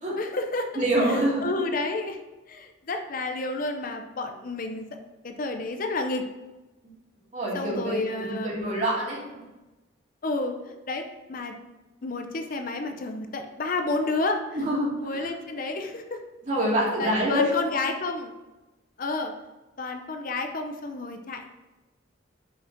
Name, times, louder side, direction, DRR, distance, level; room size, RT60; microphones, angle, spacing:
voice 1, 0.2-2.2 2.5-4.9 5.2-6.2 7.5-8.7 10.2-11.6 12.0-14.7 15.0-16.2 17.0-18.3 19.0-19.3 19.8-21.5, left 2 dB, 45° left, 5 dB, 0.6 m, -31 dB
voice 2, 0.8-1.5 7.3-9.5 14.5-14.9 16.5-17.5, right 1 dB, 40° right, -5 dB, 2.5 m, -26 dB
5.9 x 5.3 x 5.9 m, 1.1 s
head